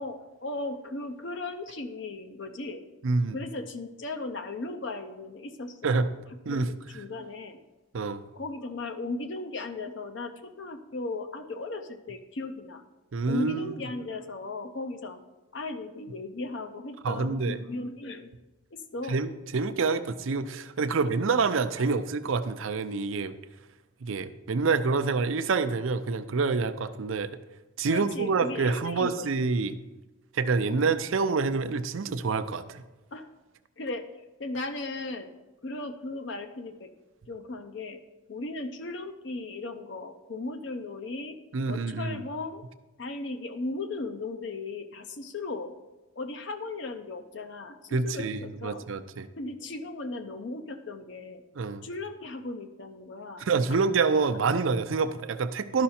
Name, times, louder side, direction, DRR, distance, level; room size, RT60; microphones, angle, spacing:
voice 1, 0.0-2.8 3.3-6.1 6.5-7.6 8.3-12.8 13.3-15.2 15.5-18.3 18.7-19.2 20.9-21.0 27.8-29.4 30.7-31.0 33.1-33.3 33.8-34.1 34.4-35.3 35.6-36.9 37.3-38.0 38.3-41.4 41.6-42.6 43.0-45.7 46.2-48.9 49.4-51.4 51.8-53.5, left 2 dB, 60° left, 6 dB, 0.6 m, -37 dB
voice 2, 3.0-3.4 5.8-6.1 6.5-6.7 7.9-8.2 13.1-13.7 17.0-17.6 19.1-23.3 24.0-27.3 27.8-29.8 30.3-32.8 41.5-42.2 47.9-49.3 51.6-51.8 53.4-55.8, right 4 dB, 75° right, 11 dB, 0.5 m, -27 dB
12.0 x 5.7 x 4.3 m, 1.1 s
head